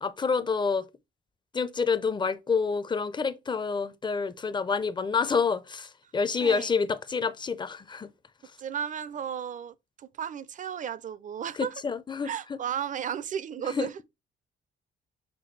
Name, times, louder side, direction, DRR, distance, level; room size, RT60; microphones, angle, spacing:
voice 1, 0.0-0.8 1.5-8.1 11.6-12.3 13.7-13.9, left 5 dB, 25° left, 0.4 m, -28 dB
voice 2, 8.6-11.8 12.2-14.0, right 8 dB, 40° right, 0.4 m, -34 dB
5.9 x 2.2 x 3.1 m
cardioid pair, 90°, 20 cm